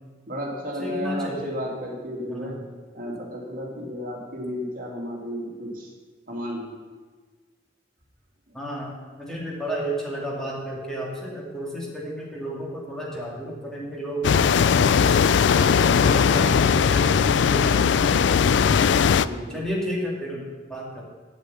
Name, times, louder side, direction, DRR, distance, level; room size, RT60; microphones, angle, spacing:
voice 1, 0.3-2.6 2.9-5.9 6.3-6.8 8.5-8.6 19.2-19.7, equal, 45° right, 0 dB, 2.3 m, -33 dB
voice 2, 0.8-1.5 2.3-2.6 8.5-8.9 9.2-14.2 14.6-18.6 19.2-21.1, equal, 5° left, -4 dB, 2.4 m, -32 dB
sound 1, 14.2-19.3, left 6 dB, 70° left, 0.3 m, -19 dB
8.5 x 8.0 x 8.3 m, 1.4 s
head